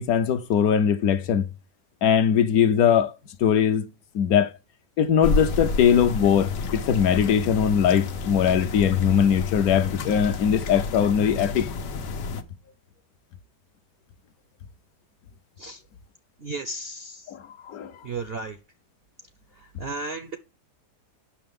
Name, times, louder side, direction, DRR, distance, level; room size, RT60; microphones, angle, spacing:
voice 1, 0.0-1.5 2.0-3.1 3.4-4.5 5.0-11.7 17.3-17.9, left 8 dB, 70° left, 1.0 m, -21 dB
sound 1, 5.2-12.4, left 3 dB, 90° left, 1.5 m, -30 dB
voice 2, 16.4-17.3 18.0-18.6 19.6-20.4, right 3 dB, 60° right, 0.6 m, -34 dB
8.6 x 6.1 x 3.6 m
omnidirectional pair, 1.8 m